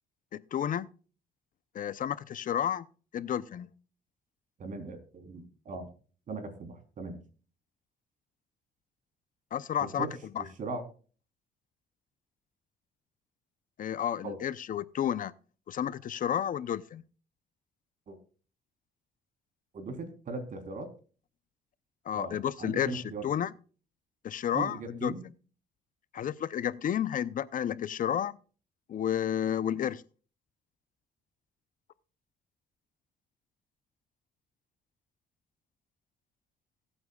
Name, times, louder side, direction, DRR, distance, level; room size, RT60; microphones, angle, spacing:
voice 1, 0.3-0.9 1.7-2.9 3.1-3.7 9.5-10.1 13.8-15.3 15.7-17.0 22.1-23.5 24.2-25.1 26.1-28.4 28.9-30.0, left 9 dB, 50° left, 0.7 m, -31 dB
voice 2, 4.6-5.9 6.3-7.2 9.8-10.1 10.6-10.8 14.2-14.4 18.1-18.2 19.7-20.9 22.1-23.3 24.5-25.2, right 3 dB, 50° right, 3.7 m, -39 dB
22.5 x 8.9 x 2.4 m
cardioid pair, 110°, 17 cm